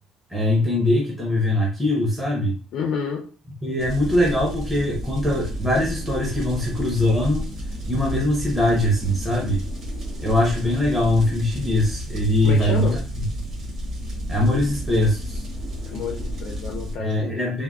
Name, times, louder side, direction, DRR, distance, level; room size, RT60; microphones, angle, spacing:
voice 1, 0.3-2.6 3.6-7.5 7.9-9.6 10.2-13.0 14.3-15.5 17.0-17.6, left 1 dB, 5° right, 0.5 m, -22 dB
voice 2, 2.7-3.3 12.4-13.0 15.9-17.4, left 6 dB, 55° left, 0.4 m, -29 dB
sound 1, 3.8-17.0, equal, 45° right, 1.3 m, -31 dB
3.4 x 2.0 x 2.3 m
cardioid pair, 180°, 0 cm